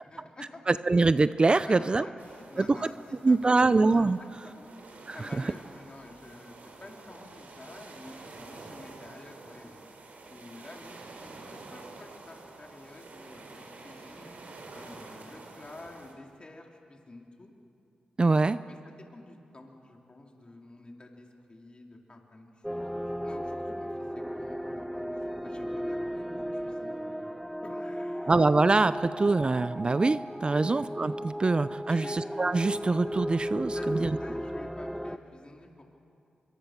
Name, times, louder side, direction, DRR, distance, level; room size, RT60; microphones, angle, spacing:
voice 1, 0.1-0.6 1.6-3.8 4.2-9.9 10.3-14.3 14.7-17.5 18.7-22.9 23.2-27.3 27.6-28.4 30.5-30.7 31.9-32.2 33.7-35.8, left 2 dB, 35° left, 1 dB, 3.8 m, -49 dB
voice 2, 0.7-2.0 2.6-2.9 3.2-4.2 5.1-5.2 18.2-18.6 28.3-34.1, right 3 dB, 35° right, 14 dB, 0.6 m, -24 dB
sound 1, 2.2-16.1, right 3 dB, 65° right, 4.2 m, -48 dB
sound 2, 22.6-35.2, equal, ahead, 0.9 m, -35 dB
25.5 x 24.0 x 6.8 m, 2.5 s
cardioid pair, 50°, 3 cm